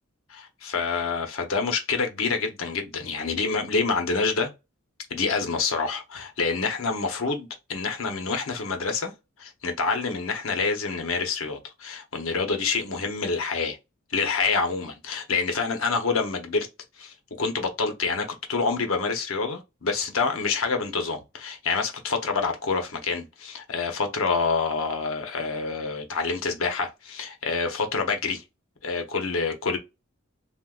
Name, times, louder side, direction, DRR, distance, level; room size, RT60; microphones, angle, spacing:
voice 1, 0.3-4.5 5.1-9.1 9.4-13.8 14.1-16.7 17.0-28.4 28.8-29.8, left 4 dB, 75° left, 0.8 m, -27 dB
3.6 x 2.5 x 2.4 m
head